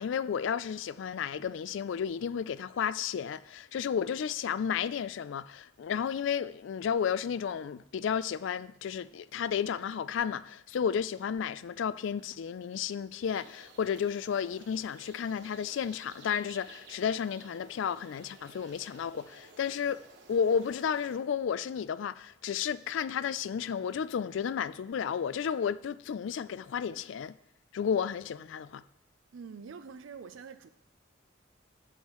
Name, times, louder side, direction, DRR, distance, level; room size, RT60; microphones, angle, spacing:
voice 1, 0.0-20.0 20.3-27.3 27.7-28.8, left 7 dB, 65° left, 0.3 m, -32 dB
sound 1, 13.2-21.2, right 3 dB, 55° right, 1.2 m, -55 dB
voice 2, 29.3-30.7, right 5 dB, 70° right, 0.4 m, -45 dB
12.5 x 7.4 x 3.0 m
head